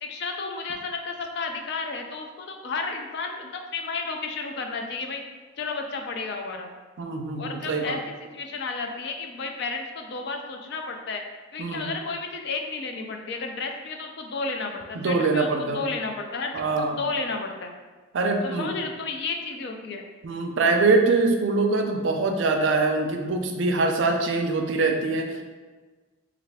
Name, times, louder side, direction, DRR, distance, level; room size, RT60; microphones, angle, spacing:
voice 1, 0.0-5.2 5.6-6.7 7.4-11.2 11.5-16.5 16.8-17.7 18.4-20.0, left 4 dB, 60° left, 4 dB, 0.4 m, -32 dB
voice 2, 7.0-8.0 11.6-12.0 14.9-15.8 16.5-17.0 18.1-18.7 20.2-25.4, right 3 dB, 75° right, 4 dB, 0.4 m, -23 dB
3.2 x 2.3 x 3.4 m, 1.3 s
head